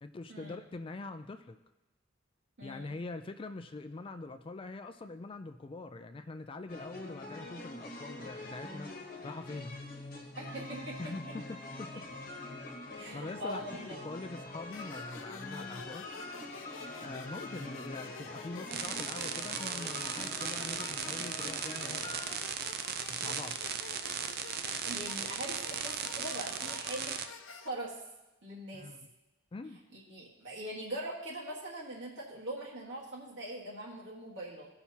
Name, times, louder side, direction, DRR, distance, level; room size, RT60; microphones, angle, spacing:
voice 1, 0.0-1.6 2.6-8.9 9.2-9.8 11.0-12.0 12.8-16.0 17.0-22.2 23.1-23.6 28.7-29.1 29.5-29.8, left 3 dB, 25° left, 9 dB, 0.3 m, -44 dB
voice 2, 2.6-2.9 10.4-11.0 13.0-14.0 24.9-27.1 27.5-28.0 28.4-28.9 29.9-34.7, right 1 dB, 70° right, -5 dB, 1.6 m, -42 dB
sound 1, 6.7-22.4, left 2 dB, 50° left, 1.1 m, -45 dB
sound 2, 14.7-27.7, left 6 dB, 80° left, 0.5 m, -49 dB
sound 3, 18.7-27.3, right 8 dB, 55° right, 0.5 m, -37 dB
15.5 x 5.8 x 2.8 m, 1.0 s
head